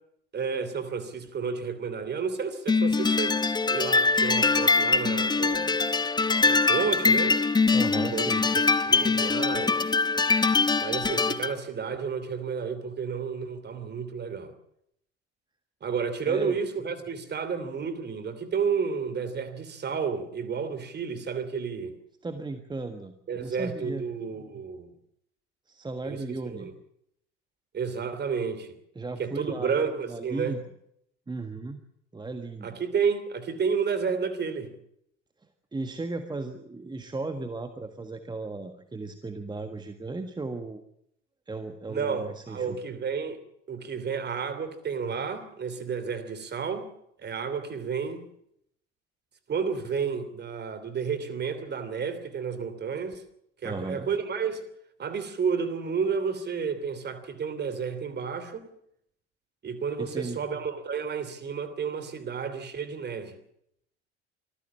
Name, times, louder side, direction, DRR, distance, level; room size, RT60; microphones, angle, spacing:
voice 1, 0.3-3.4 3.7-5.7 6.4-7.4 7.9-9.8 10.8-14.5 15.8-21.9 23.3-24.9 26.0-26.7 27.7-28.7 29.2-30.6 32.6-34.7 41.9-43.4 43.7-46.9 47.2-48.3 49.5-53.2 53.6-54.6 55.0-58.6 59.6-63.4, right 6 dB, 30° right, 3.0 m, -31 dB
sound 1, 2.7-11.5, left 4 dB, 10° left, 0.9 m, -23 dB
voice 2, 7.7-8.5 16.3-16.6 22.2-24.0 25.7-26.7 28.9-30.6 31.3-31.8 32.1-32.7 35.7-40.8 41.5-42.8 53.6-54.1 60.0-60.4, right 3 dB, 10° right, 1.6 m, -36 dB
25.0 x 15.0 x 7.4 m
figure-of-eight pair, 65°, 35 cm